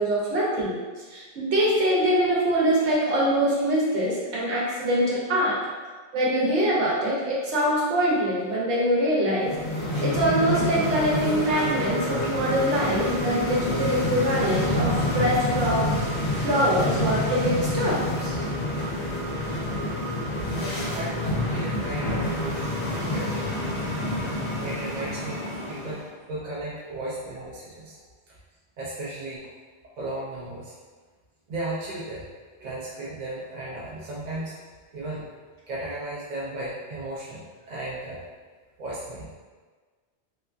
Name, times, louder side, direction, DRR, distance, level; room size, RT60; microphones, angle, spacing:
voice 1, 0.0-5.6 6.1-15.9 16.4-18.4, equal, 80° right, -5 dB, 1.0 m, -24 dB
sound 1, 9.4-26.0, left 1 dB, 70° left, 1.0 m, -28 dB
voice 2, 20.5-23.7 24.6-28.0 28.8-29.5 30.0-30.7 31.5-32.2 32.6-34.6 34.9-35.3 35.7-38.2 38.8-39.4, right 1 dB, 60° right, -6 dB, 0.5 m, -35 dB
2.8 x 2.2 x 2.4 m, 1.4 s
omnidirectional pair, 1.2 m